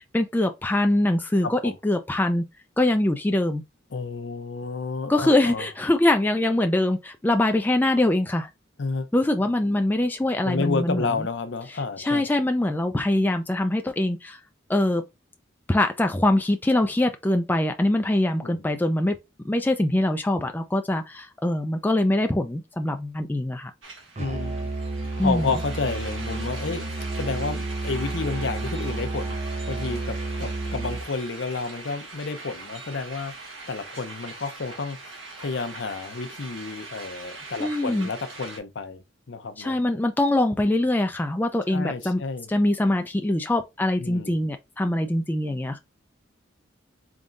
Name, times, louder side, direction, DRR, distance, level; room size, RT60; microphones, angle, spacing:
voice 1, 0.0-2.4 2.8-3.6 5.1-8.5 9.1-11.1 11.7-14.4 14.7-15.0 15.7-19.2 19.4-23.7 25.2-25.5 37.6-38.1 39.6-42.2 42.5-45.8, left 1 dB, 10° left, 0.3 m, -23 dB
voice 2, 1.4-1.8 3.9-5.7 8.8-9.1 10.4-12.2 18.4-18.6 24.2-24.7 25.1-26.8 27.1-33.3 33.7-39.0 39.3-39.8 41.7-42.5 44.0-44.4, left 4 dB, 65° left, 0.6 m, -31 dB
sound 1, 23.8-38.6, right 3 dB, 80° right, 1.3 m, -41 dB
Musical instrument, 24.2-31.2, right 2 dB, 35° right, 0.7 m, -31 dB
3.9 x 3.6 x 2.5 m
head